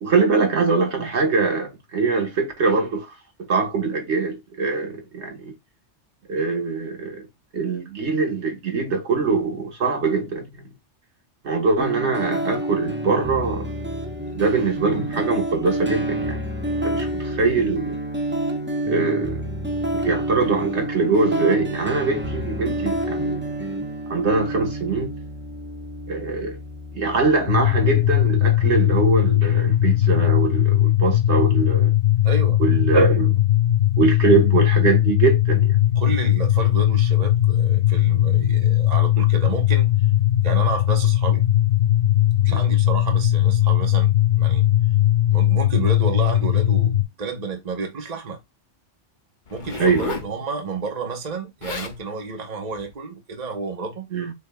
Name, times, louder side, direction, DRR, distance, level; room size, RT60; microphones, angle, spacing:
voice 1, 0.0-3.1 3.4-5.5 6.3-7.2 7.5-10.6 11.4-13.7 14.3-16.4 16.8-18.0 18.9-19.4 19.9-23.4 24.1-25.1 26.1-26.6 26.9-31.9 32.6-33.4 34.0-35.7 42.5-42.6 49.8-50.2 54.1-54.3, right 4 dB, 70° right, 1.6 m, -22 dB
sound 1, 11.8-29.8, right 1 dB, 10° right, 0.7 m, -29 dB
sound 2, 27.5-47.0, left 13 dB, 70° left, 0.8 m, -19 dB
voice 2, 32.2-32.6 36.0-39.9 40.4-41.5 42.4-44.1 44.4-44.6 45.3-48.4 49.5-54.1, right 4 dB, 35° right, 1.1 m, -30 dB
Zipper (clothing), 49.5-50.3 51.3-51.4 51.6-52.0 52.7-52.9, left 4 dB, 45° left, 1.0 m, -33 dB
6.7 x 3.5 x 2.2 m
omnidirectional pair, 1.2 m